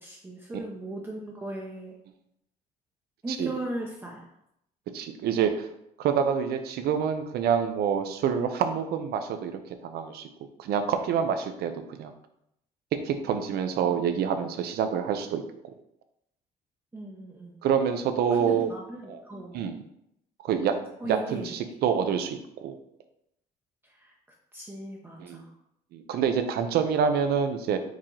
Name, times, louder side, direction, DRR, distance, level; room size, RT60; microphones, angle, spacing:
voice 1, 0.0-2.0 3.2-4.2 16.9-17.6 18.4-19.8 21.0-21.5 23.8-24.1 24.5-25.5, right 1 dB, 15° right, -2 dB, 0.6 m, -38 dB
voice 2, 4.9-5.7 6.0-10.3 10.6-12.1 13.0-15.4 17.6-18.7 19.1-19.2 19.5-19.8 20.4-20.7 21.0-22.8 25.2-25.4 25.9-27.8, right 7 dB, 70° right, 8 dB, 0.6 m, -27 dB
4.7 x 2.8 x 3.7 m, 0.78 s
cardioid pair, 110°, 17 cm